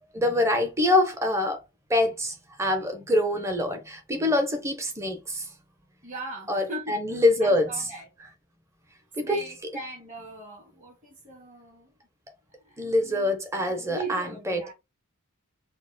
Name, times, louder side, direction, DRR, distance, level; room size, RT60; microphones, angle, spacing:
voice 1, 0.1-1.6 1.9-5.5 6.5-7.7 9.2-9.4 12.8-14.6, left 1 dB, 15° right, 0.7 m, -25 dB
voice 2, 6.0-8.1 9.2-11.9 12.6-14.7, right 3 dB, 35° right, 2.0 m, -40 dB
4.4 x 2.0 x 3.9 m
head